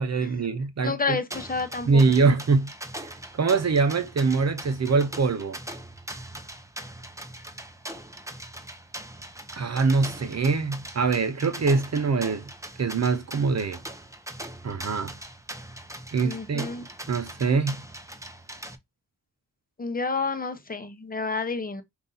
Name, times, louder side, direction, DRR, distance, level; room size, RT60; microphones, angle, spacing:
voice 1, 0.0-1.2 1.9-2.7 3.0-5.6 9.6-12.5 12.8-13.8 14.6-15.1 16.1-16.7 17.1-17.8, right 4 dB, 50° right, 0.8 m, -24 dB
voice 2, 0.8-2.2 16.2-16.9 19.8-21.8, left 4 dB, 25° left, 0.9 m, -30 dB
sound 1, 1.3-18.8, right 1 dB, 10° right, 0.7 m, -41 dB
5.2 x 2.6 x 4.0 m
cardioid pair, 65°, 35 cm